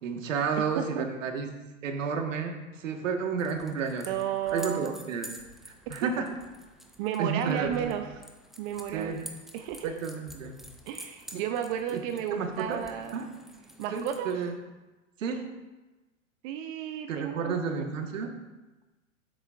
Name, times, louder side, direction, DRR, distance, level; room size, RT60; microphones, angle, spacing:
voice 1, 0.0-1.5 1.8-4.1 4.5-5.3 5.9-6.3 7.2-7.9 8.9-9.2 9.8-10.6 11.9-12.0 12.3-12.8 13.1-13.2 13.9-14.5 15.2-15.5 17.1-18.3, right 5 dB, 70° right, 4 dB, 1.6 m, -31 dB
voice 2, 0.8-1.1 4.1-4.9 6.0-6.1 7.0-8.1 8.6-9.2 9.5-10.0 10.9-13.1 13.8-14.3 16.4-17.6, right 10 dB, 40° right, 6 dB, 0.7 m, -33 dB
sound 1, 3.4-14.5, right 1 dB, ahead, 0.4 m, -49 dB
12.5 x 8.0 x 2.5 m, 1.1 s
hypercardioid pair, 115°, 40 cm